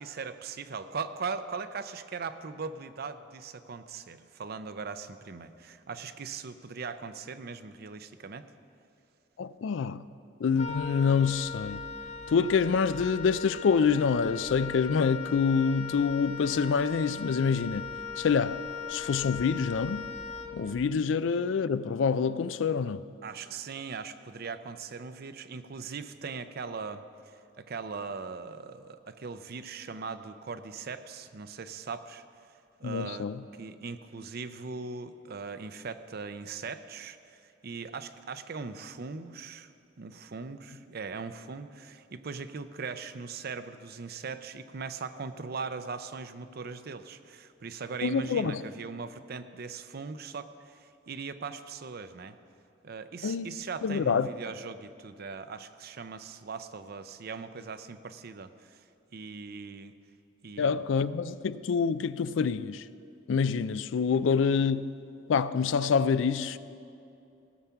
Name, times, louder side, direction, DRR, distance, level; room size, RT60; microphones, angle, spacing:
voice 1, 0.0-8.5 23.2-32.2 32.8-33.3 33.6-39.7 40.0-52.4 52.8-58.8 59.1-59.9 60.4-60.8, right 5 dB, 55° right, 0.6 m, -40 dB
voice 2, 9.4-10.0 10.4-11.8 12.3-17.9 18.2-18.6 18.9-20.1 20.5-23.0 32.8-33.4 48.0-48.6 53.2-53.5 53.8-54.3 60.6-62.8 63.3-64.9 65.3-66.6, left 6 dB, 75° left, 0.4 m, -26 dB
Wind instrument woodwind instrument, 10.5-21.0, left 5 dB, 35° left, 0.7 m, -39 dB
17.0 x 7.2 x 5.7 m
head